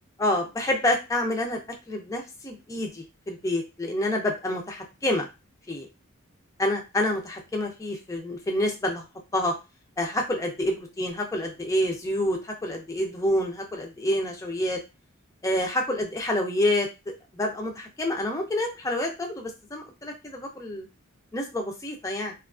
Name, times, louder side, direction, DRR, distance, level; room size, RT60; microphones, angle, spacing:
voice 1, 0.2-1.6 1.9-5.3 5.7-5.9 6.6-9.0 9.3-9.5 10.0-14.8 15.4-20.9 21.3-22.3, left 1 dB, 15° left, 2 dB, 0.3 m, -28 dB
2.8 x 2.3 x 2.3 m, 0.27 s
head